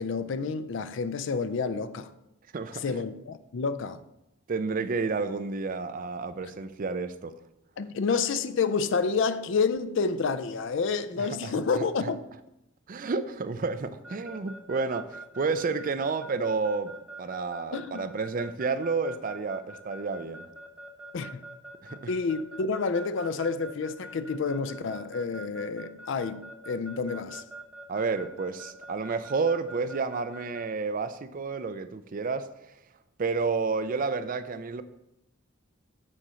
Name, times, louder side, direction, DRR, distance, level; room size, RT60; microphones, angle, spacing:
voice 1, 0.0-2.1 2.8-4.0 7.8-12.2 17.7-18.1 21.1-21.4 22.1-27.4, left 5 dB, 60° left, 0.4 m, -29 dB
voice 2, 2.5-3.0 4.5-7.3 11.2-12.1 12.9-16.9 17.2-20.5 21.8-22.1 27.9-32.5 33.2-34.8, right 4 dB, 40° right, 0.4 m, -30 dB
Keyboard (musical) / Alarm, 14.0-30.6, right 2 dB, 5° right, 0.8 m, -44 dB
6.4 x 4.3 x 6.2 m
head